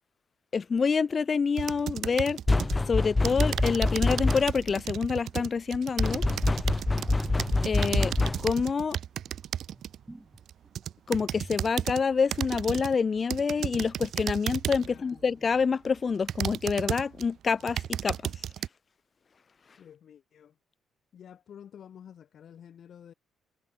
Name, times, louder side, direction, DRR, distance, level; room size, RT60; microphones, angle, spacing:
voice 1, 0.5-2.4 2.9-6.2 7.6-8.1 8.4-9.0 11.1-18.3, left 5 dB, 40° left, 1.9 m, -27 dB
sound 1, 1.6-2.8 3.2-10.0 10.5-12.0 12.3-12.9 13.3-15.0 15.6-15.7 16.3-17.2 17.6-18.7, right 10 dB, 70° right, 0.4 m, -34 dB
sound 2, 2.5-4.7 6.0-8.7, left 2 dB, 20° left, 0.4 m, -26 dB
sound 3, 7.1-7.3 7.7-10.8 11.2-11.7 12.0-12.1, right 1 dB, 10° right, 4.6 m, -46 dB
voice 2, 14.8-15.3 19.8-20.6 21.1-23.1, left 9 dB, 60° left, 4.2 m, -50 dB
cardioid pair, 90°, 0 cm